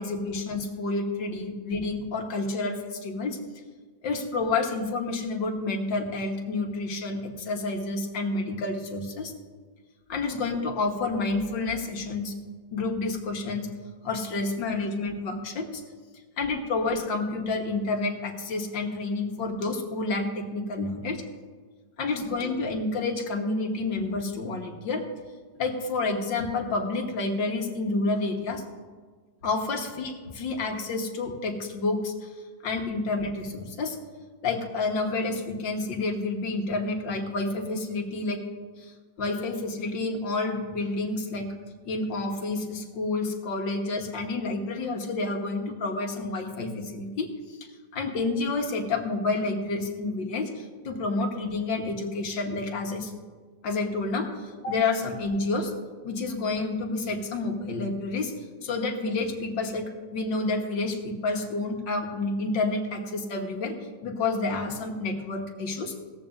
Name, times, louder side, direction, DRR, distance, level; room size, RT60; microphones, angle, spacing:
voice 1, 0.0-3.4 4.0-9.3 10.1-12.3 12.7-13.7 14.0-15.8 16.4-21.2 22.0-25.1 25.6-28.6 29.4-32.3 32.6-34.0 34.4-38.5 38.8-41.5 41.9-53.1 53.6-55.7 56.0-58.3 58.6-63.8 64.0-65.9, left 3 dB, 85° left, 3 dB, 2.1 m, -29 dB
17.5 x 14.0 x 2.6 m, 1.5 s
omnidirectional pair, 2.0 m